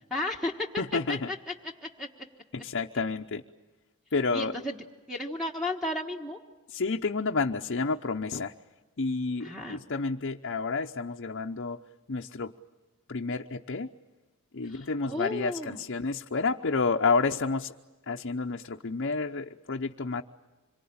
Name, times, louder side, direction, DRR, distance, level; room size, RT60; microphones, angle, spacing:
voice 1, 0.1-0.7 1.1-1.5 1.8-2.1 4.3-4.8 5.1-6.4 9.4-9.8 14.6-15.8, left 1 dB, ahead, 0 dB, 1.4 m, -33 dB
voice 2, 0.8-1.3 2.5-3.4 4.1-4.5 6.7-8.5 9.0-11.8 12.1-12.5 13.1-13.9 14.5-17.7 18.1-20.2, left 4 dB, 55° left, 2 dB, 0.8 m, -30 dB
26.5 x 23.5 x 8.7 m, 1.2 s
head